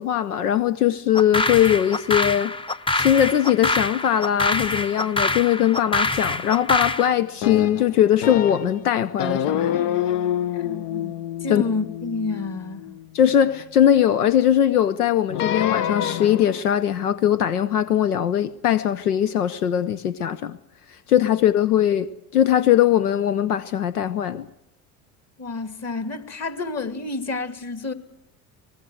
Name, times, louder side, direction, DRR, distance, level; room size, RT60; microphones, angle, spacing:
voice 1, 0.0-2.5 3.0-9.9 11.5-11.6 13.1-20.6 21.1-22.1 22.3-24.5, left 10 dB, 90° left, 0.8 m, -20 dB
sound 1, 1.1-7.1, left 2 dB, 10° left, 0.9 m, -25 dB
sound 2, 7.4-8.8 9.2-13.5 15.3-16.6, left 10 dB, 65° left, 1.0 m, -27 dB
voice 2, 10.5-12.9 25.4-27.9, left 3 dB, 35° left, 2.7 m, -30 dB
24.5 x 20.5 x 7.8 m
hypercardioid pair, 65°, 44 cm